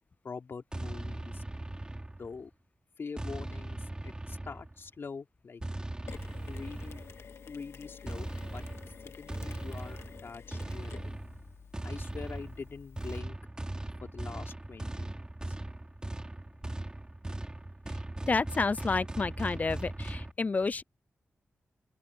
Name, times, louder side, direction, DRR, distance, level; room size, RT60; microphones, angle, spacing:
voice 1, 0.2-1.4 2.2-2.5 3.0-5.6 6.4-7.0 7.5-8.6 9.0-11.2 11.8-13.4 14.0-15.6, left 5 dB, 60° left, 3.4 m, -44 dB
sound 1, 0.7-2.5 3.2-4.9 5.6-7.2 8.0-20.3, right 1 dB, 20° right, 3.2 m, -39 dB
Mechanisms, 6.1-13.2, left 6 dB, 80° left, 2.0 m, -50 dB
voice 2, 18.3-20.8, left 4 dB, 35° left, 0.3 m, -30 dB
open air
cardioid pair, 70°, 4 cm